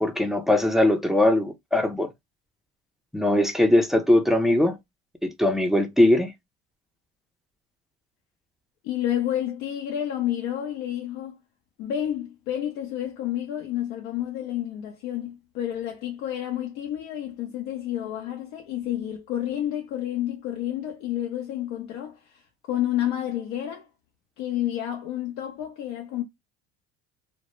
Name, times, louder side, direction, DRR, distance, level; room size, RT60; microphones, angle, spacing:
voice 1, 0.0-2.1 3.1-4.8 5.2-6.3, left 1 dB, ahead, 0.4 m, -21 dB
voice 2, 8.8-11.4 11.8-23.9 24.4-26.2, left 11 dB, 70° left, 0.6 m, -30 dB
2.1 x 2.0 x 3.0 m
supercardioid pair, 90°, 30 cm